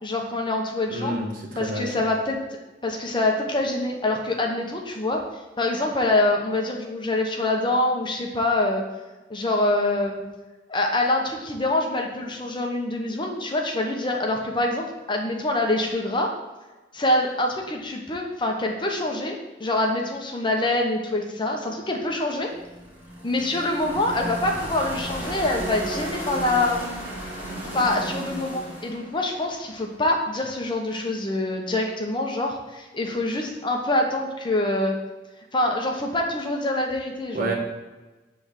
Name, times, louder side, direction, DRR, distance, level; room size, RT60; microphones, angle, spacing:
voice 1, 0.0-1.1 1.6-2.4 2.8-5.2 5.6-8.8 9.3-10.2 10.7-16.3 16.9-22.5 23.2-27.0 27.7-34.9 35.5-37.5, left 2 dB, 25° left, 1 dB, 0.8 m, -25 dB
voice 2, 0.9-1.9 37.3-37.5, right 1 dB, 50° right, 0 dB, 1.2 m, -29 dB
sound 1, 22.5-30.5, right 1 dB, 10° right, 1.9 m, -34 dB
6.9 x 3.4 x 5.7 m, 1.1 s
head